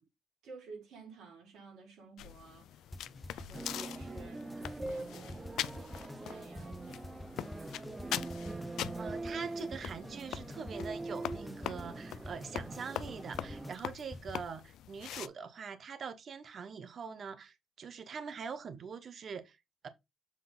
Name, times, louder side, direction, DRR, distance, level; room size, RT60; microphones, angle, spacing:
voice 1, 0.4-2.9 3.3-7.5, right 4 dB, 85° right, 4.9 m, -53 dB
sound 1, 2.2-15.3, left 12 dB, 80° left, 0.3 m, -43 dB
sound 2, 2.9-14.3, left 2 dB, 15° left, 0.9 m, -48 dB
sound 3, 3.5-13.8, right 2 dB, 20° right, 0.3 m, -43 dB
voice 2, 9.0-19.6 19.8-19.9, right 6 dB, 50° right, 0.9 m, -43 dB
7.4 x 3.9 x 3.9 m
cardioid pair, 90°, 0 cm